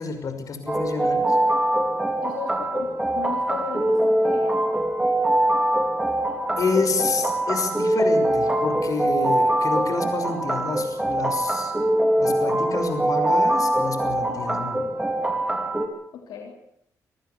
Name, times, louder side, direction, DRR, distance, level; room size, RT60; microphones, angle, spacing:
voice 1, 0.0-1.4 6.6-11.7 12.2-14.8, left 4 dB, 55° left, 7 dB, 5.9 m, -28 dB
sound 1, 0.7-15.9, right 1 dB, 10° right, 4.2 m, -23 dB
voice 2, 2.2-4.6 16.1-16.5, left 6 dB, 85° left, 2 dB, 3.6 m, -35 dB
26.0 x 15.0 x 8.3 m, 0.77 s
cardioid pair, 80°, 7 cm